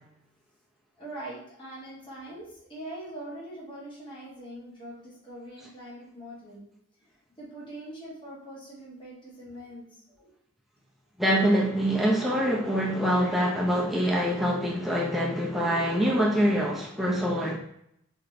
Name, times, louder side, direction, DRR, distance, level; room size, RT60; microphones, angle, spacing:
voice 1, 1.0-6.7 7.4-10.3, right 1 dB, 25° left, -6 dB, 1.0 m, -42 dB
voice 2, 11.2-17.6, equal, ahead, -3 dB, 0.3 m, -25 dB
3.0 x 2.5 x 2.5 m, 0.75 s
head